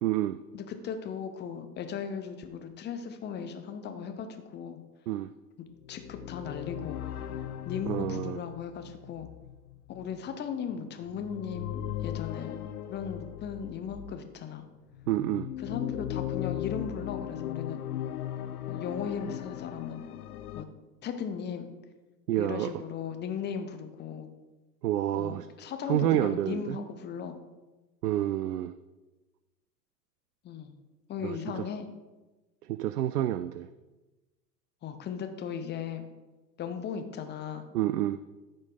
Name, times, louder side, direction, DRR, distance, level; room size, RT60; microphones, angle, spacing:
voice 1, 0.0-0.4 5.1-5.3 7.9-8.4 15.1-15.5 22.3-22.7 24.8-25.5 25.9-26.8 28.0-28.7 31.2-31.7 32.7-33.7 37.7-38.2, right 13 dB, 70° right, 14 dB, 0.5 m, -28 dB
voice 2, 0.5-4.8 5.9-7.0 7.6-9.3 9.9-12.6 12.9-14.6 15.6-17.9 18.7-20.0 20.5-20.7 21.0-21.7 22.4-24.3 25.1-27.4 30.4-30.8 31.1-31.9 34.8-36.1 36.6-37.6, left 7 dB, 20° left, 7 dB, 0.8 m, -37 dB
sound 1, 5.8-14.3 14.9-20.6, left 11 dB, 65° left, 0.7 m, -38 dB
13.5 x 5.2 x 3.9 m, 1.2 s
figure-of-eight pair, 95°, 50 cm